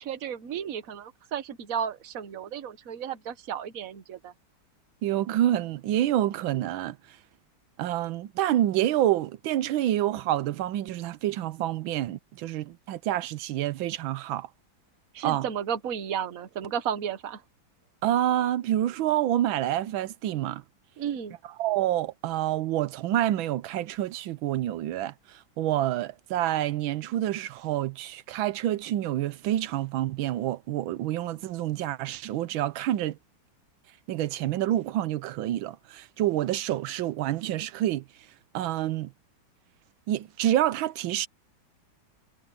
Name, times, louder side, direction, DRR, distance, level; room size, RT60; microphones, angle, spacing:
voice 1, 0.0-4.3 15.1-17.4 21.0-21.4, right 8 dB, 50° right, 1.5 m, -33 dB
voice 2, 5.0-7.2 7.8-14.5 15.2-15.4 18.0-20.6 21.6-33.2 34.1-38.0 38.5-39.1 40.1-41.3, right 13 dB, 90° right, 1.5 m, -28 dB
omnidirectional pair, 2.1 m